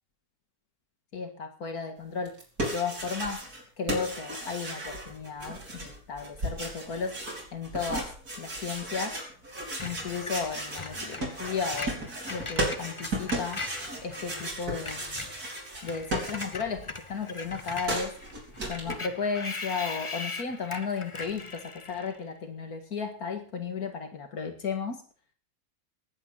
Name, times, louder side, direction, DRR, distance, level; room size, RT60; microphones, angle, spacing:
voice 1, 1.1-2.3 2.6-3.4 3.8-7.2 7.5-8.1 8.4-9.2 9.8-13.6 14.0-15.2 15.8-18.1 18.7-25.0, left 5 dB, 80° left, 5 dB, 2.4 m, -34 dB
sound 1, 2.3-3.6 3.9-16.8 17.1-19.0, right 1 dB, 90° right, 4.9 m, -35 dB
Screech, 9.8-14.5 14.7-22.2, left 3 dB, 25° left, 1.0 m, -40 dB
19.0 x 8.9 x 5.6 m, 0.42 s
omnidirectional pair, 1.6 m